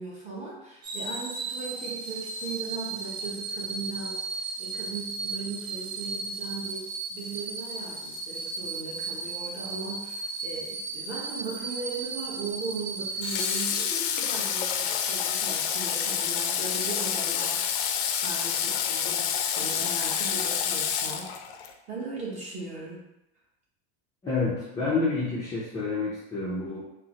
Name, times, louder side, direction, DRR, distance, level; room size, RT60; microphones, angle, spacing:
voice 1, 0.0-17.9 18.2-21.3 21.9-23.0, right 3 dB, 20° right, -4 dB, 0.8 m, -38 dB
sound 1, 0.8-14.5 15.0-15.1, right 4 dB, 85° right, 0.8 m, -35 dB
Water / Water tap faucet, 13.2-21.7, left 8 dB, 80° left, 0.5 m, -28 dB
voice 2, 24.2-26.8, left 3 dB, 10° left, -9 dB, 0.4 m, -28 dB
3.8 x 2.0 x 2.8 m, 0.90 s
supercardioid pair, 155°, 32 cm